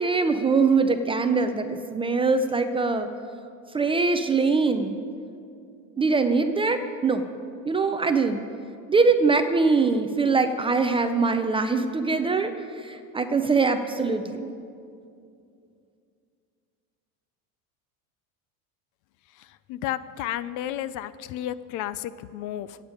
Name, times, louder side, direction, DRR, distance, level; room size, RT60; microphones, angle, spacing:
voice 1, 0.0-3.1 3.7-5.0 6.0-7.2 7.7-8.4 8.9-14.5, right 4 dB, 15° right, 7 dB, 0.4 m, -23 dB
voice 2, 19.7-22.8, left 12 dB, 50° left, 16 dB, 0.5 m, -32 dB
25.0 x 8.8 x 5.1 m, 2.5 s
cardioid pair, 145°, 40 cm